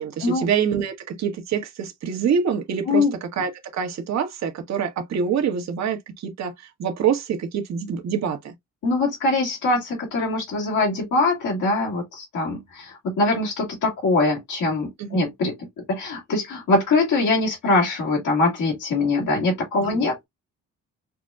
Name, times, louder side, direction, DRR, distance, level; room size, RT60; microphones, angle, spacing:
voice 1, 0.0-8.5 15.0-15.2 19.8-20.0, right 7 dB, 65° right, 1.2 m, -26 dB
voice 2, 8.8-20.3, left 2 dB, 75° left, 2.2 m, -23 dB
5.8 x 2.2 x 2.4 m
cardioid pair, 90°, 30 cm